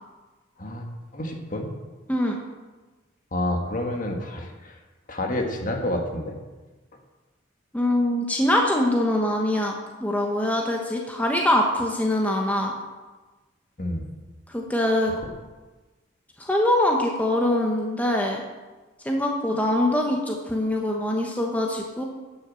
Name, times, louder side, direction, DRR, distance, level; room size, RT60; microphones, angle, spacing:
voice 1, 1.1-1.7 3.3-4.8 5.1-6.4 13.8-14.1 15.2-15.3, left 1 dB, 45° left, 3 dB, 1.6 m, -29 dB
voice 2, 7.7-9.8 10.0-12.7 14.5-15.1 16.4-18.4 19.0-22.0, left 1 dB, 10° left, 0 dB, 1.0 m, -23 dB
10.5 x 6.4 x 7.5 m, 1.2 s
head